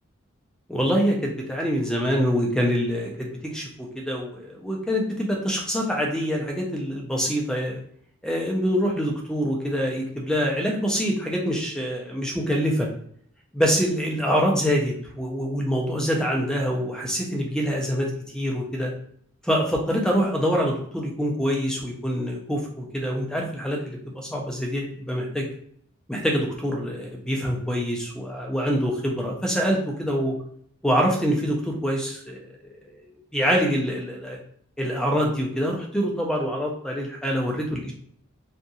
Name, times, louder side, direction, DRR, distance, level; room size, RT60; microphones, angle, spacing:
voice 1, 0.7-7.8 8.2-12.9 13.5-18.9 19.4-25.5 26.1-30.4 30.8-32.5 33.3-34.4 34.8-37.9, equal, 5° left, -1 dB, 0.4 m, -25 dB
2.6 x 2.6 x 2.3 m, 0.64 s
head